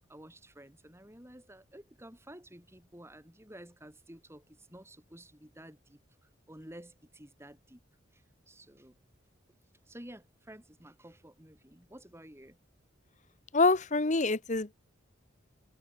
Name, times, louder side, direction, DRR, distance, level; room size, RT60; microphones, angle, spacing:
voice 1, 0.1-7.8 8.1-9.0 9.8-12.6, right 1 dB, 15° right, 6.3 m, -52 dB
voice 2, 13.5-14.7, left 3 dB, 40° left, 1.2 m, -26 dB
head